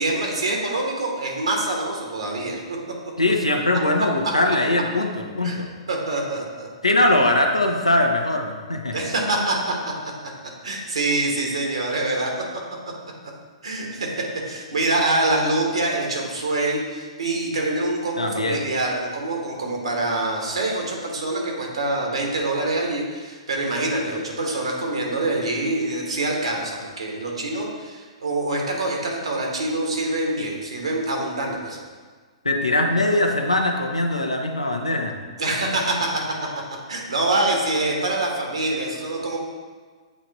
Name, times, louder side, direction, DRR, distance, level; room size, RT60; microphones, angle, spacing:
voice 1, 0.0-2.6 4.2-4.3 5.4-5.6 5.9-6.7 8.9-9.7 10.6-12.3 13.6-14.1 14.5-31.8 35.4-36.2 36.9-39.4, right 2 dB, 75° right, 0 dB, 1.4 m, -25 dB
voice 2, 3.2-5.7 6.8-9.0 18.2-18.6 32.4-35.2, left 1 dB, 90° left, 3 dB, 0.7 m, -21 dB
8.3 x 3.2 x 4.0 m, 1.5 s
figure-of-eight pair, 115°, 3 cm